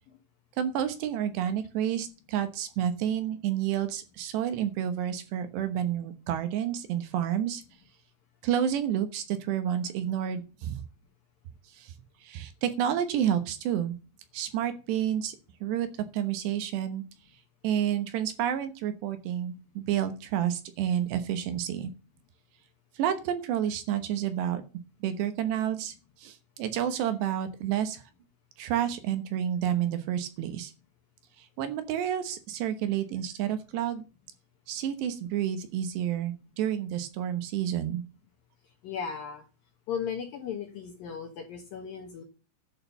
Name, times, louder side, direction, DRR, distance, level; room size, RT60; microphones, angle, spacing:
voice 1, 0.6-7.6 8.4-10.8 11.7-11.9 12.2-14.0 14.3-15.4 15.6-15.9 16.1-17.0 17.6-21.9 23.0-24.6 25.0-28.0 28.6-30.7 31.4-34.0 34.7-38.0, right 10 dB, 70° right, 10 dB, 3.0 m, -30 dB
voice 2, 38.6-39.4 39.9-42.2, left 7 dB, 65° left, 2 dB, 2.5 m, -36 dB
11.5 x 6.6 x 6.9 m, 0.33 s
omnidirectional pair, 5.5 m